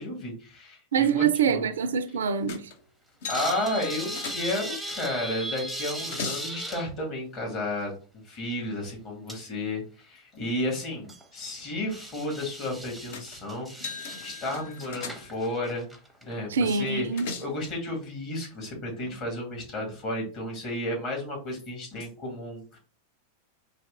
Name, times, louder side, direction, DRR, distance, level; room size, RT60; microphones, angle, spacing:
voice 1, 0.0-1.7 3.3-7.9 8.3-13.9 14.2-15.9 16.2-22.8, left 1 dB, 35° left, 2.2 m, -32 dB
voice 2, 0.9-2.6 16.5-17.3, right 6 dB, 65° right, 0.3 m, -25 dB
sound 1, 2.5-2.8 3.2-4.8 5.6-6.5 13.1-13.4 13.7-15.6 16.9-17.6, left 4 dB, 55° left, 0.6 m, -39 dB
sound 2, 3.3-6.9 8.5-8.6 9.3-9.4 9.8-9.9 10.9-11.3 11.9-16.2 16.6-16.7, right 1 dB, ahead, 0.7 m, -37 dB
4.1 x 2.7 x 3.7 m
figure-of-eight pair, 90°, 0 cm